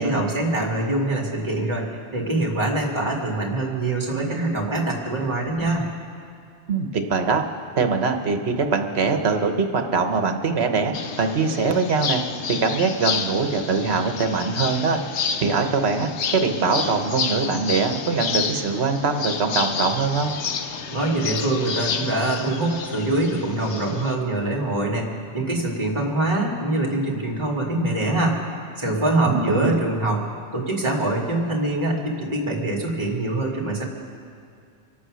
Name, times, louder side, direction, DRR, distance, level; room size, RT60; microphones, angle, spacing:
voice 1, 0.0-5.8 20.9-28.4 28.7-30.3 30.5-33.8, right 2 dB, 25° right, -1 dB, 2.4 m, -24 dB
voice 2, 6.7-7.4 7.7-12.2 12.5-15.0 15.4-20.3 29.2-29.8, right 4 dB, 65° right, 6 dB, 1.3 m, -22 dB
sound 1, 10.9-24.1, left 6 dB, 75° left, 1.1 m, -30 dB
25.0 x 8.6 x 6.3 m, 2.4 s
omnidirectional pair, 1.2 m